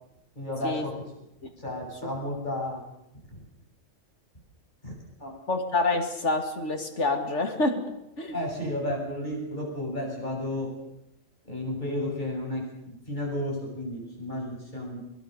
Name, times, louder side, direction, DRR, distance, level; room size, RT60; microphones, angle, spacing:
voice 1, 0.4-1.0 1.6-2.8 4.8-4.9 5.2-5.3 8.3-10.7 11.4-15.0, left 1 dB, 35° left, -1 dB, 7.8 m, -32 dB
voice 2, 5.5-8.4, left 2 dB, 60° left, 5 dB, 2.8 m, -27 dB
24.0 x 20.5 x 6.8 m, 0.85 s
omnidirectional pair, 1.3 m